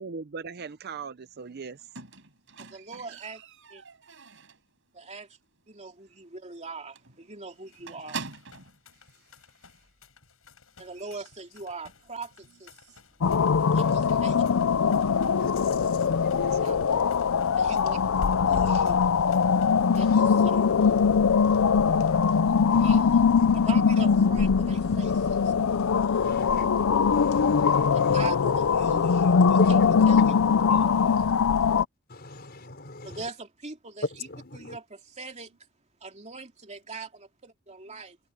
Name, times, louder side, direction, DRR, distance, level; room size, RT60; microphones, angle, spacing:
voice 1, 0.0-1.9 3.1-3.2 15.1-15.5 16.3-17.0 37.9-38.0, right 5 dB, 50° right, 0.6 m, -40 dB
Squeak, 2.0-4.7 5.1-5.5 5.7-5.8 6.2-6.3 6.6-6.7 7.0-8.8 9.6-9.7, right 5 dB, 65° right, 6.3 m, -43 dB
voice 2, 2.6-3.4 3.7-3.8 4.9-5.3 5.7-8.2 10.8-12.9 13.7-14.4 16.6-16.8 17.6-18.0 18.5-19.1 19.9-20.9 21.3-22.1 22.8-23.3 23.7-25.5 27.9-29.8 30.1-30.2 30.7-31.2 33.0-34.0 34.5-35.5 36.0-38.2, right 4 dB, 35° right, 2.7 m, -41 dB
sound 1, 7.5-20.2, left 6 dB, 90° left, 6.7 m, -56 dB
sound 2, 13.2-31.8, left 6 dB, 75° left, 0.5 m, -22 dB
voice 3, 13.8-14.2 15.4-16.7 20.0-20.4 22.7-23.8 26.2-26.7 27.1-28.2 29.6-30.5 32.1-33.3 34.0-34.8, left 2 dB, 50° left, 5.4 m, -38 dB
head